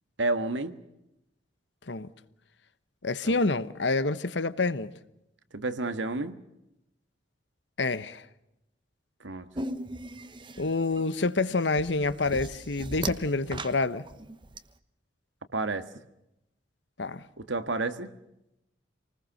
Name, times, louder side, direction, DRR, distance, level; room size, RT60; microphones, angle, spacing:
voice 1, 0.2-0.7 3.2-3.5 5.5-6.3 9.2-9.5 15.5-15.9 17.4-18.1, right 2 dB, 85° right, 1.6 m, -30 dB
voice 2, 3.0-4.9 7.8-8.2 10.6-14.0 17.0-17.2, left 3 dB, 70° left, 1.1 m, -27 dB
sound 1, 9.5-14.6, right 2 dB, 25° right, 1.0 m, -38 dB
27.5 x 20.0 x 6.5 m
head